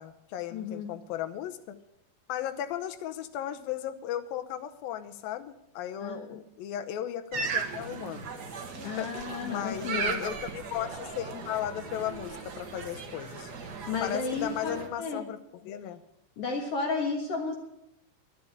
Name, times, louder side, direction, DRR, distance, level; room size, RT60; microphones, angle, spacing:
voice 1, 0.0-1.8 2.3-8.3 8.8-9.1 9.4-13.5 14.0-16.0, left 11 dB, 75° left, 9 dB, 2.6 m, -36 dB
voice 2, 0.5-0.9 6.0-6.3 8.8-10.2 13.9-15.2 15.7-15.8 16.4-17.5, left 4 dB, 50° left, 2 dB, 2.0 m, -33 dB
sound 1, 7.3-14.9, right 4 dB, 80° right, 0.8 m, -37 dB
11.5 x 10.5 x 8.7 m, 0.81 s
omnidirectional pair, 4.4 m